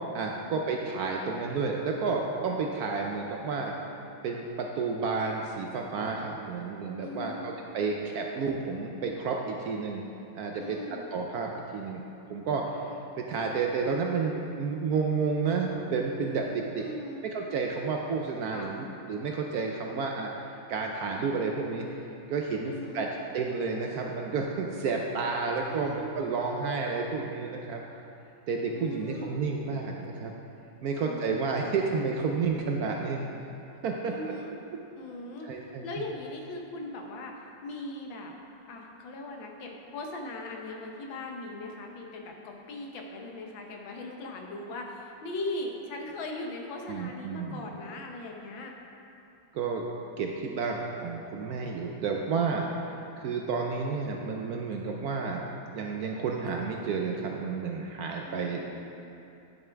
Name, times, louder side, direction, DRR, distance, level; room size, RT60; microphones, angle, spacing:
voice 1, 0.1-3.7 4.2-10.0 10.4-12.0 12.3-12.8 13.2-16.8 17.2-20.3 20.7-21.9 22.3-23.1 23.3-27.8 28.5-30.3 30.8-33.3 33.8-34.1 35.4-35.8 46.9-47.6 49.5-49.8 50.2-52.7 53.2-58.6, right 4 dB, 70° right, 1 dB, 0.9 m, -31 dB
voice 2, 7.0-7.5 10.6-11.0 16.8-17.2 18.5-18.7 22.6-23.1 25.7-26.1 28.7-29.5 30.8-31.3 34.0-34.5 34.9-35.5 35.8-37.3 37.6-38.3 38.7-48.7 58.3-58.6, left 2 dB, 85° left, 1 dB, 1.7 m, -39 dB
10.5 x 7.0 x 3.4 m, 2.8 s
omnidirectional pair, 2.1 m